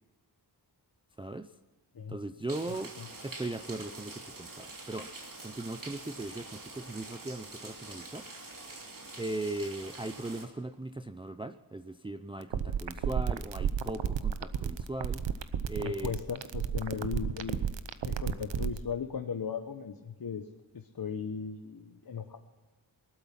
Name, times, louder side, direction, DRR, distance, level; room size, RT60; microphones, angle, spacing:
voice 1, 1.2-1.5 2.1-2.9 3.2-5.1 5.4-8.3 9.2-15.3 15.6-16.1, right 2 dB, 10° right, 9 dB, 0.5 m, -38 dB
sound 1, 2.5-10.5, right 2 dB, 45° right, 3.0 m, -46 dB
sound 2, 12.4-18.8, right 8 dB, 80° right, 0.9 m, -31 dB
voice 2, 15.8-17.6 18.0-20.4 20.7-22.4, left 6 dB, 55° left, 6 dB, 1.1 m, -37 dB
19.0 x 12.0 x 5.9 m, 1.3 s
wide cardioid pair, 80°, 43 cm